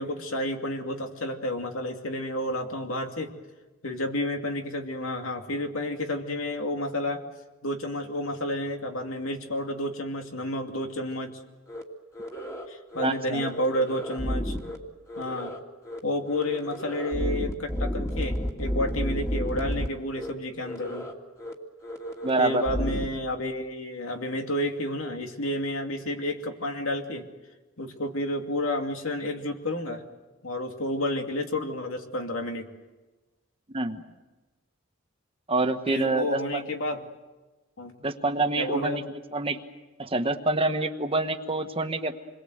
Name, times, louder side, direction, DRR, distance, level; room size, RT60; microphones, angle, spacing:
voice 1, 0.0-3.3 3.8-7.3 7.6-11.4 12.7-14.6 15.2-15.6 16.0-21.1 22.4-27.3 27.8-30.0 30.4-32.7 35.9-37.0 37.8-38.0 38.6-39.0, left 1 dB, 85° left, 4 dB, 2.6 m, -30 dB
sound 1, 11.7-11.8 12.1-12.6 12.9-13.1 13.3-14.8 15.1-15.6 15.8-16.0 16.3-19.9 20.1-20.3 20.6-21.1 21.4-21.5 21.8-23.1, equal, 15° left, 2.4 m, -32 dB
voice 2, 13.0-13.4 22.2-22.6 33.7-34.0 35.5-36.6 38.0-39.6 40.0-42.1, right 2 dB, 25° right, 7 dB, 1.3 m, -27 dB
28.0 x 22.0 x 8.0 m, 1.2 s
head